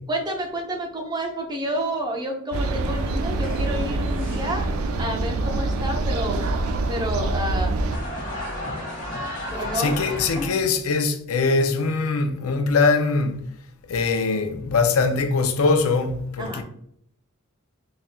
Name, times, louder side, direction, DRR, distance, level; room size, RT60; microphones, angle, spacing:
voice 1, 0.1-4.7 5.0-6.4 6.9-7.9 9.5-9.9 10.4-10.5 16.4-16.6, right 1 dB, 20° right, 0.6 m, -29 dB
sound 1, 2.5-8.0, right 2 dB, 80° right, 0.4 m, -25 dB
sound 2, 3.4-5.0, left 1 dB, 60° left, 1.4 m, -38 dB
sound 3, 7.9-10.7, left 1 dB, 40° left, 1.2 m, -32 dB
voice 2, 9.7-13.5 13.9-16.6, left 4 dB, 80° left, 0.5 m, -22 dB
4.1 x 3.6 x 2.2 m
head